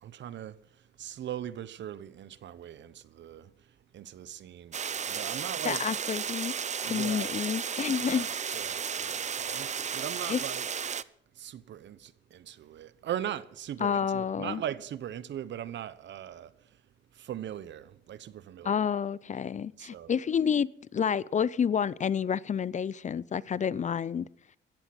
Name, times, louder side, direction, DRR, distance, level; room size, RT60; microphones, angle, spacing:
voice 1, 0.0-4.8 5.1-5.8 6.8-7.3 7.9-8.3 8.5-10.7 11.3-16.8 17.1-18.8 19.8-20.1, right 10 dB, 65° right, 1.0 m, -40 dB
sound 1, 4.7-11.0, right 7 dB, 35° right, 0.7 m, -34 dB
voice 2, 5.6-6.5 6.8-8.3 10.3-10.4 13.8-14.6 18.6-24.3, left 7 dB, 40° left, 0.5 m, -29 dB
16.0 x 14.0 x 6.0 m
cardioid pair, 90°, 20 cm